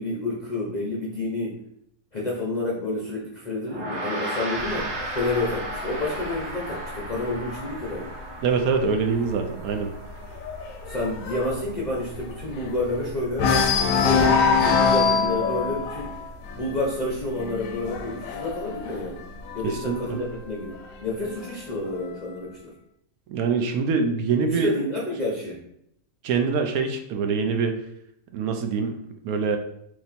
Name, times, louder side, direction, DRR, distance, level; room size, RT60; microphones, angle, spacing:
voice 1, 0.0-1.6 2.1-8.1 10.9-13.6 13.9-16.1 16.6-19.2 19.5-22.7 24.4-25.6, left 2 dB, 50° left, -4 dB, 0.5 m, -29 dB
Gong, 3.7-13.3, right 1 dB, 35° right, 0.7 m, -36 dB
sound 1, 4.6-8.2 8.6-8.9 9.2-9.3 9.7-13.0 13.3-19.9 20.7-21.7, left 5 dB, 70° left, 0.8 m, -25 dB
voice 2, 8.4-9.9 19.6-20.2 23.3-24.7 26.2-27.8 28.3-29.0 29.2-29.6, right 5 dB, 75° right, 6 dB, 1.0 m, -24 dB
3.1 x 3.0 x 4.1 m, 0.74 s
omnidirectional pair, 1.6 m